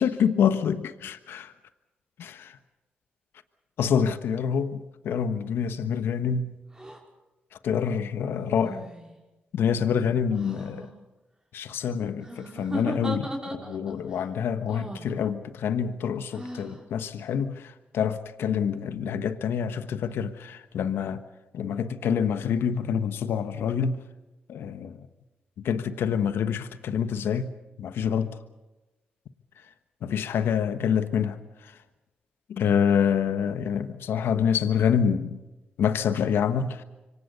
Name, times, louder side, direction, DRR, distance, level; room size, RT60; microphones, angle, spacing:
voice 1, 0.0-1.5 2.2-2.6 3.8-6.6 7.6-8.8 9.5-10.9 11.5-21.2 21.5-24.0 24.5-25.0 25.6-27.5 27.8-28.4 30.0-31.4 31.6-31.7 32.5-35.4 35.8-36.8, left 7 dB, 75° left, 1.2 m, -26 dB
sound 1, 6.7-7.0 8.3-9.2 10.3-10.9 12.2-14.0 14.7-15.1 16.3-16.8, right 1 dB, 15° right, 5.7 m, -37 dB
26.5 x 24.0 x 5.4 m
supercardioid pair, 50°, 4 cm